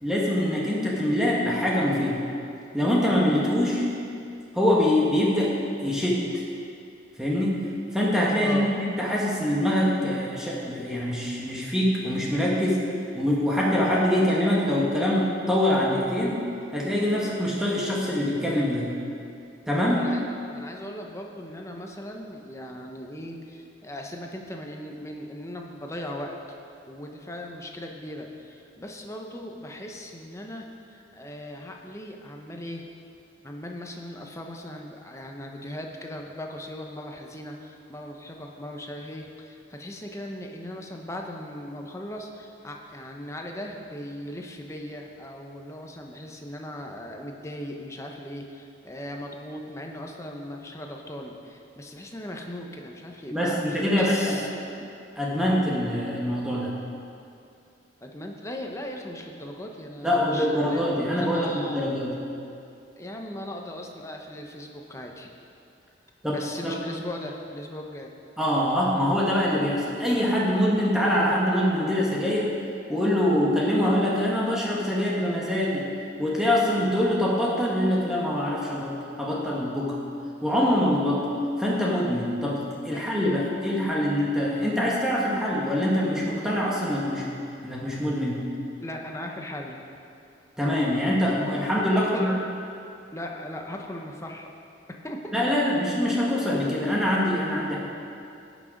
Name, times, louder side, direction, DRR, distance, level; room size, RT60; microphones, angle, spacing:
voice 1, 0.0-2.2 2.7-3.9 4.5-5.5 5.8-6.4 7.2-7.6 7.9-12.8 13.1-16.4 16.7-18.9 19.7-20.1 53.3-54.4 55.2-56.7 60.0-62.1 66.2-66.8 68.4-72.5 72.9-75.9 76.2-80.0 80.4-81.3 81.6-87.3 87.6-88.4 90.6-92.3 95.3-97.8, left 1 dB, 5° right, -5 dB, 1.3 m, -24 dB
voice 2, 8.4-8.7 19.9-20.2 20.5-26.4 26.9-32.9 33.4-54.5 58.0-62.0 63.0-65.3 66.3-68.1 82.9-83.1 88.8-89.8 91.9-92.4 93.1-94.5 95.0-95.3, left 1 dB, 15° left, 1 dB, 0.9 m, -38 dB
17.0 x 6.2 x 5.2 m, 2.6 s
head